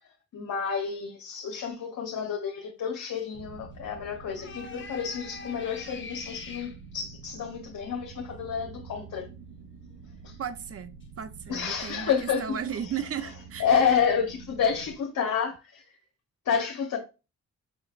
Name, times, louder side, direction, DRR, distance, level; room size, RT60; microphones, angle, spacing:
voice 1, 0.3-9.2 10.2-10.3 11.5-12.6 13.6-15.8 16.4-17.0, left 7 dB, 65° left, 0.9 m, -29 dB
sound 1, 3.2-3.3 4.3-6.8 11.0-11.1 11.5-12.3, left 5 dB, 35° left, 0.9 m, -44 dB
sound 2, 3.3-15.0, right 5 dB, 75° right, 0.9 m, -47 dB
voice 2, 10.4-13.7, right 8 dB, 45° right, 0.6 m, -35 dB
5.7 x 3.1 x 2.4 m
supercardioid pair, 55°, 33 cm